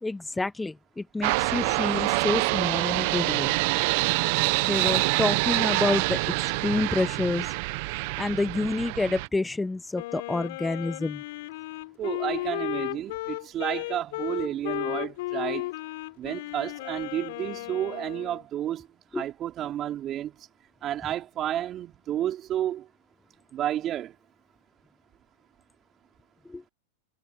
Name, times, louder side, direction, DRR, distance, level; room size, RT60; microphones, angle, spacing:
voice 1, 0.0-3.5 4.6-6.3 6.6-7.5 8.2-11.2 19.1-19.2 26.5-26.6, left 2 dB, 10° left, 1.0 m, -28 dB
sound 1, 1.2-9.3, right 25 dB, 55° right, 1.3 m, -26 dB
Wind instrument woodwind instrument, 9.9-18.4, left 20 dB, 60° left, 3.8 m, -34 dB
voice 2, 12.0-15.7 16.2-18.9 19.1-20.3 20.8-22.9 23.5-24.1, right 11 dB, 35° right, 4.8 m, -31 dB
hypercardioid pair, 105°, 0 cm